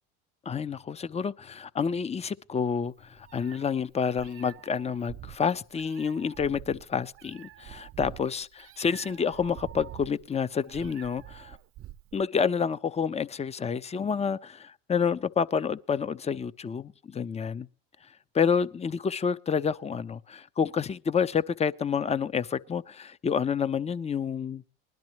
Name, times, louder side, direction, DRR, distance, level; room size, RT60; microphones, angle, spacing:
voice 1, 0.4-8.5 8.8-11.6 12.1-17.7 18.3-24.6, left 6 dB, 20° left, 0.7 m, -29 dB
Meow, 2.9-12.2, right 13 dB, 45° right, 0.7 m, -46 dB
20.5 x 12.0 x 3.0 m
supercardioid pair, 90°, 31 cm